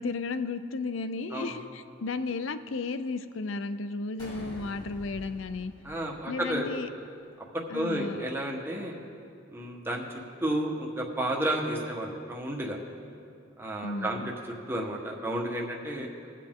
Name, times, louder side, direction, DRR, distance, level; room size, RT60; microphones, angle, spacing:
voice 1, 0.0-5.7 6.3-6.9 7.7-8.2 13.8-14.3, left 3 dB, 85° left, 11 dB, 0.5 m, -34 dB
sound 1, 4.2-6.8, equal, 25° left, 2.7 m, -46 dB
voice 2, 5.8-6.7 7.5-9.0 9.5-10.0 10.4-12.8 13.6-14.2 14.7-16.1, right 1 dB, 10° right, -1 dB, 1.3 m, -31 dB
21.5 x 7.4 x 3.8 m, 2.4 s
head